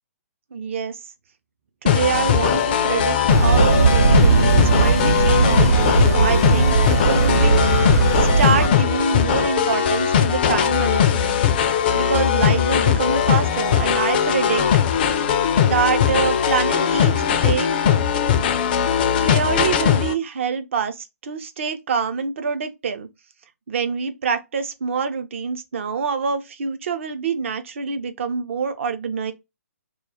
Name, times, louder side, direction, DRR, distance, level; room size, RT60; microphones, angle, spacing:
voice 1, 0.5-1.0 1.8-7.9 8.1-11.7 11.9-14.6 15.1-17.9 19.2-23.1 23.7-29.3, right 6 dB, 50° right, 0.5 m, -26 dB
sound 1, 1.9-20.1, left 8 dB, 35° left, 0.3 m, -19 dB
sound 2, 3.3-8.7, right 4 dB, 75° right, 0.9 m, -18 dB
2.3 x 2.1 x 3.5 m
figure-of-eight pair, 130°, 9 cm